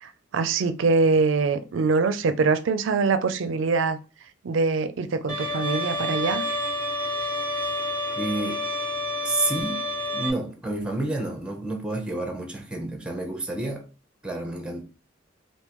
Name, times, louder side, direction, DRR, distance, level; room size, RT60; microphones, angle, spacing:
voice 1, 0.0-4.0 4.4-6.4, right 4 dB, 75° right, 0.4 m, -23 dB
Bowed string instrument, 5.3-10.3, left 1 dB, 25° left, 1.0 m, -29 dB
voice 2, 8.2-8.6 9.2-9.9 10.1-13.9 14.2-14.8, right 2 dB, 5° right, 0.6 m, -29 dB
3.5 x 2.7 x 2.9 m
head